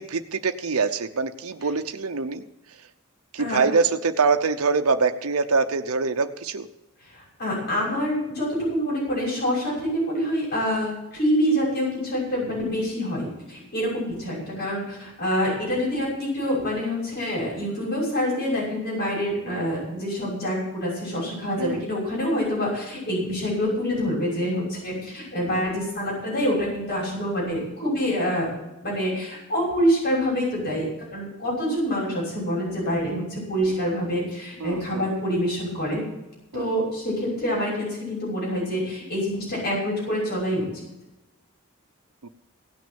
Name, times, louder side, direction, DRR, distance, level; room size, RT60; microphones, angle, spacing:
voice 1, 0.0-2.4 3.3-6.7 19.5-19.6 21.6-21.8 34.6-35.1 36.5-36.7 42.2-42.3, right 4 dB, 80° right, 6 dB, 0.8 m, -24 dB
voice 2, 7.1-28.5 28.8-36.0 36.5-40.7, equal, 50° left, -4 dB, 6.2 m, -26 dB
16.5 x 6.3 x 8.7 m, 0.98 s
head